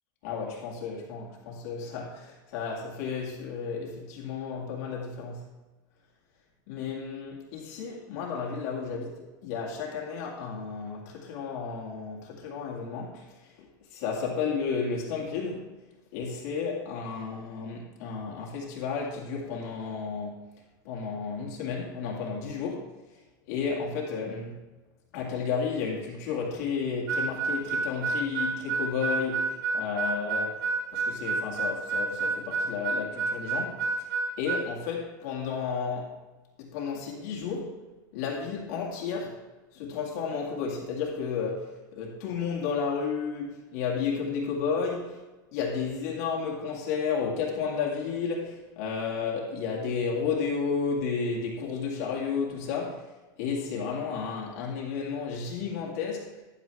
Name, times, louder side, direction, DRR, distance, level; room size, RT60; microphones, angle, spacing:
voice 1, 0.2-5.5 6.7-13.3 13.6-15.8 16.1-20.5 20.8-22.9 23.5-24.6 25.1-30.6 30.9-34.1 34.4-36.2 36.6-37.8 38.1-39.4 39.7-45.2 45.5-53.1 53.4-56.4, left 5 dB, 50° left, -2 dB, 2.2 m, -32 dB
Harmonica, 27.1-34.7, right 4 dB, 65° right, 1.5 m, -29 dB
12.5 x 7.2 x 3.5 m, 1.2 s
supercardioid pair, 170°, 11 cm